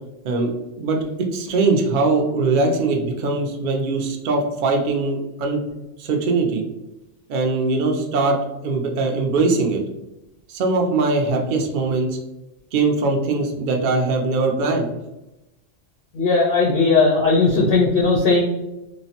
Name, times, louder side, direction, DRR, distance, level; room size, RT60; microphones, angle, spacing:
voice 1, 0.8-5.6 6.0-6.6 7.3-8.4 8.6-9.8 10.5-12.1 12.7-14.9, right 3 dB, 70° right, 1 dB, 0.4 m, -21 dB
voice 2, 16.1-18.4, left 3 dB, 60° left, -2 dB, 0.6 m, -17 dB
3.0 x 2.1 x 2.7 m, 0.95 s
omnidirectional pair, 1.3 m